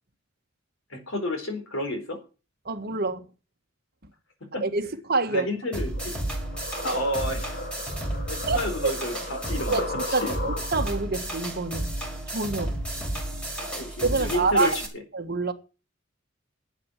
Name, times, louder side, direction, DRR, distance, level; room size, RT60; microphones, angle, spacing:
voice 1, 0.9-2.2 4.5-4.6 5.3-6.3 6.8-7.5 8.3-9.2 9.4-10.4 13.6-15.0, left 1 dB, 80° left, 4.2 m, -31 dB
voice 2, 2.6-3.2 4.6-5.5 6.8-7.0 8.5-9.0 9.7-11.9 12.3-12.7 14.0-14.8 15.1-15.5, right 3 dB, 55° right, 1.6 m, -27 dB
sound 1, 5.7-14.9, right 1 dB, 5° left, 5.1 m, -32 dB
sound 2, 5.9-11.0, left 2 dB, 50° left, 2.3 m, -36 dB
11.5 x 8.7 x 7.3 m
head